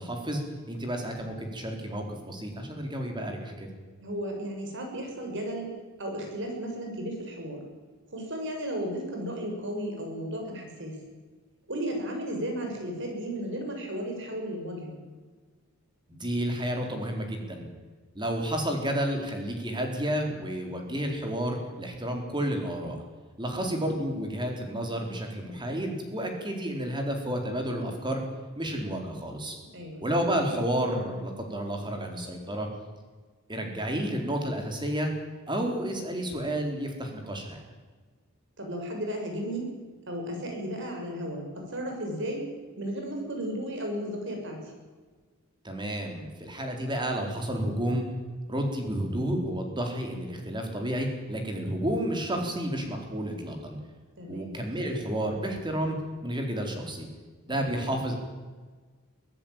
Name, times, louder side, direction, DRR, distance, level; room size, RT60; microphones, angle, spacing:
voice 1, 0.0-3.7 16.1-17.7 18.1-23.0 23.4-28.2 28.5-29.6 30.0-32.7 33.5-35.1 35.5-37.6 45.6-48.0 48.5-53.8 54.3-56.0 56.2-57.1 57.4-58.2, right 1 dB, 20° right, 3 dB, 4.2 m, -31 dB
voice 2, 4.0-5.7 6.0-7.6 8.1-11.0 11.7-15.0 23.5-23.8 29.7-30.1 38.6-39.7 40.1-42.4 42.8-44.7 54.2-54.5 57.5-57.9, equal, 55° right, 2 dB, 6.4 m, -34 dB
24.0 x 15.5 x 9.1 m, 1.4 s
head